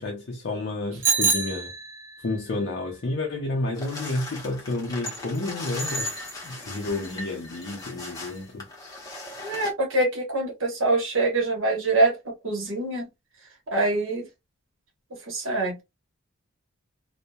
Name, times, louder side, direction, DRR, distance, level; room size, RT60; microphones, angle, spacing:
voice 1, 0.0-1.7 2.2-6.1 6.4-8.7, left 2 dB, 50° left, 0.5 m, -30 dB
Bicycle bell, 1.0-2.3, right 5 dB, 10° right, 0.4 m, -25 dB
sound 1, 3.7-9.7, left 1 dB, 15° left, 0.7 m, -37 dB
voice 2, 9.4-13.1 13.7-14.3 15.3-15.8, right 2 dB, 60° right, 1.1 m, -24 dB
2.7 x 2.1 x 2.2 m
head